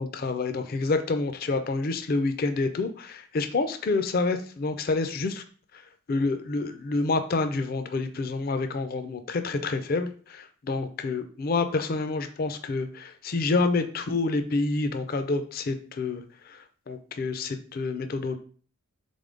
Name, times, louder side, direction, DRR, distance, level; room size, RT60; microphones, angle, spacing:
voice 1, 0.0-5.4 5.7-5.8 6.1-18.4, left 3 dB, 45° left, 8 dB, 0.4 m, -28 dB
3.8 x 3.5 x 3.7 m, 0.42 s
head